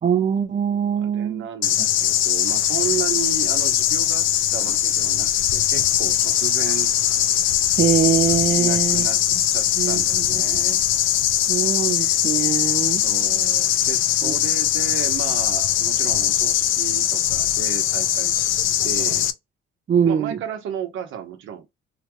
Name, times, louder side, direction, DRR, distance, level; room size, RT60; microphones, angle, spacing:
voice 1, 0.0-1.5 1.8-1.9 7.8-9.4 9.8-10.6 11.5-13.1 14.2-14.4 19.9-20.4, right 7 dB, 40° right, 0.5 m, -23 dB
voice 2, 1.0-4.2 4.5-6.9 8.6-9.2 9.5-10.8 13.0-18.5 18.8-19.3 20.0-21.7, right 9 dB, 80° right, 0.9 m, -33 dB
sound 1, 1.6-19.3, left 12 dB, 85° left, 0.4 m, -21 dB
2.8 x 2.2 x 3.0 m
cardioid pair, 90°, 20 cm